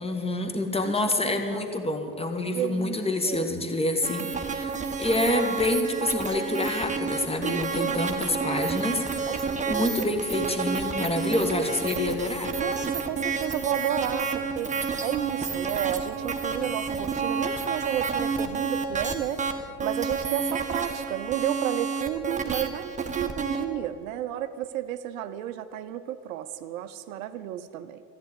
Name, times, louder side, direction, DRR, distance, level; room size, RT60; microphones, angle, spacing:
voice 1, 0.0-9.3 9.7-12.5, left 1 dB, 15° left, 6 dB, 1.5 m, -27 dB
voice 2, 0.8-1.8 2.5-3.6 7.4-8.2 9.3-10.2 12.6-28.0, right 11 dB, 65° right, 12 dB, 0.7 m, -32 dB
sound 1, 4.0-23.6, right 5 dB, 15° right, 1.2 m, -30 dB
sound 2, 8.4-19.8, equal, 35° left, 3.1 m, -50 dB
14.0 x 9.0 x 8.3 m, 2.5 s
figure-of-eight pair, 55°, 44 cm